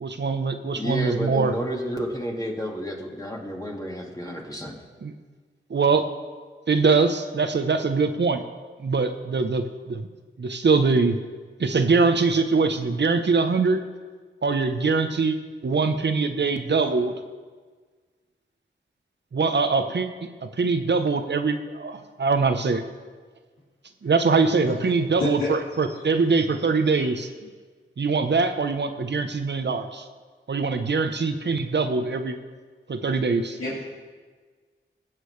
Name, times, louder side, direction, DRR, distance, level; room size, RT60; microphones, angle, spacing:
voice 1, 0.0-1.5 5.0-5.1 5.7-6.1 6.7-8.4 8.8-10.1 10.4-11.2 11.6-13.8 14.4-15.4 15.6-17.1 19.3-20.1 20.4-22.8 24.0-27.3 28.0-30.0 30.5-32.3 32.9-33.6, right 4 dB, 60° right, 7 dB, 0.9 m, -23 dB
voice 2, 0.8-4.7, equal, 15° left, -1 dB, 1.9 m, -31 dB
voice 3, 25.2-25.5 25.9-26.0 26.9-27.1 33.6-33.8, left 3 dB, 90° left, -9 dB, 2.3 m, -29 dB
19.5 x 7.6 x 3.3 m, 1.5 s
cardioid pair, 50°, 21 cm